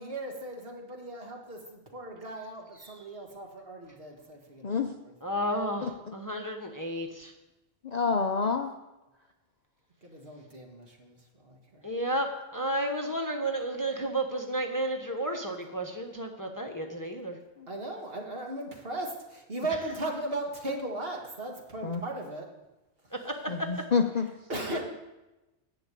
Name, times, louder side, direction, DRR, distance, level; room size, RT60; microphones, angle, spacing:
voice 1, 0.0-5.3 10.0-11.8 17.7-22.5 24.5-24.8, right 2 dB, 50° right, 1 dB, 2.0 m, -37 dB
voice 2, 5.2-7.3 11.8-12.3 12.5-17.4 23.2-23.3 24.7-24.8, right 1 dB, 15° left, 3 dB, 1.1 m, -32 dB
voice 3, 7.8-8.7 21.8-22.0 23.5-24.3, left 5 dB, 45° left, 4 dB, 0.6 m, -27 dB
11.0 x 7.0 x 8.3 m, 1.0 s
omnidirectional pair, 1.3 m